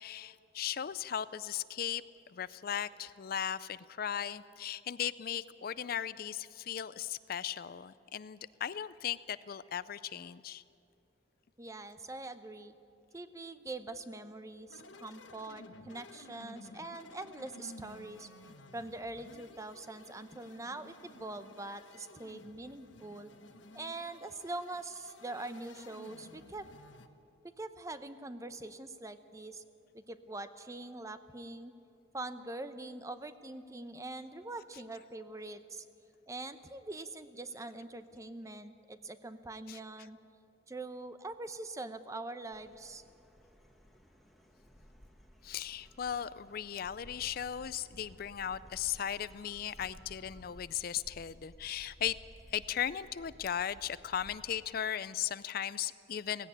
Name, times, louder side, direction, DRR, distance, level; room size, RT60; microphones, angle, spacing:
voice 1, 0.0-2.0 2.3-10.6 39.7-39.8 45.4-52.2 52.5-56.5, left 9 dB, 50° left, 16 dB, 0.4 m, -37 dB
voice 2, 11.6-12.7 13.1-18.3 18.7-23.3 23.7-26.7 27.6-29.6 29.9-31.7 32.1-35.8 36.3-40.2 40.7-43.0, right 2 dB, 15° right, 11 dB, 0.7 m, -43 dB
sound 1, 14.7-27.1, left 2 dB, 80° left, 1.2 m, -54 dB
sound 2, 42.5-54.5, equal, ahead, 1.4 m, -57 dB
16.5 x 16.5 x 9.9 m, 2.6 s
head